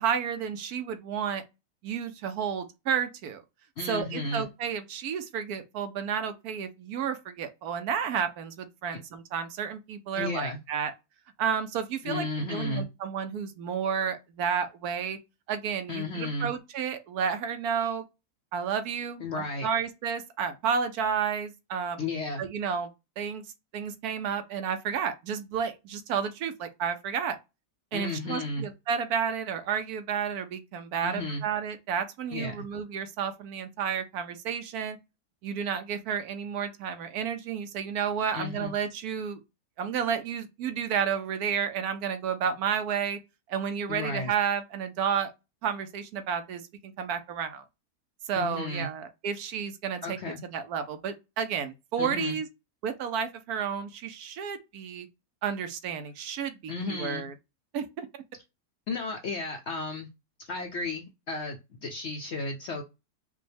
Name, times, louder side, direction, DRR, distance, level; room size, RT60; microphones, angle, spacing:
voice 1, 0.0-1.4 1.8-3.4 3.9-10.9 11.4-15.2 15.5-18.0 18.5-22.0 22.4-22.9 23.2-23.4 23.7-27.4 27.9-35.0 35.4-39.4 39.8-43.2 43.5-45.3 45.6-47.6 48.3-50.2 50.5-52.5 52.8-55.1 55.4-57.3 57.7-58.1, right 7 dB, 70° right, 1.1 m, -31 dB
voice 2, 3.8-4.4 10.2-10.6 12.0-12.9 15.9-16.5 19.2-19.7 22.0-22.4 27.9-28.7 31.0-31.4 32.3-32.6 38.3-38.7 43.9-44.3 48.3-48.9 50.0-50.4 52.0-52.4 56.7-57.3 58.9-60.1 60.4-62.8, left 3 dB, 65° left, 0.7 m, -33 dB
5.1 x 2.2 x 3.3 m
omnidirectional pair, 1.7 m